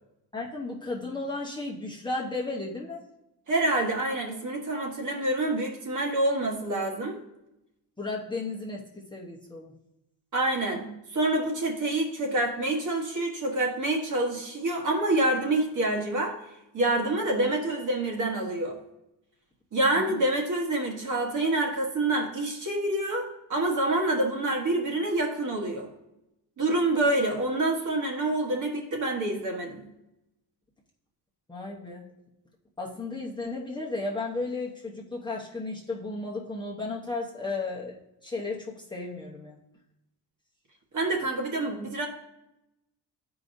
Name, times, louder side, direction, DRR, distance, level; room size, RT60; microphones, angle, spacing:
voice 1, 0.3-3.0 8.0-8.8 9.1-9.7 19.9-20.2 31.5-32.1 32.8-38.0 38.2-39.6, left 3 dB, 10° left, -4 dB, 0.9 m, -34 dB
voice 2, 3.5-7.2 10.3-16.4 16.7-18.8 19.7-25.9 26.6-29.8 40.9-42.1, right 2 dB, 45° right, 1 dB, 1.4 m, -27 dB
12.5 x 4.8 x 2.7 m, 0.88 s
cardioid pair, 145°, 41 cm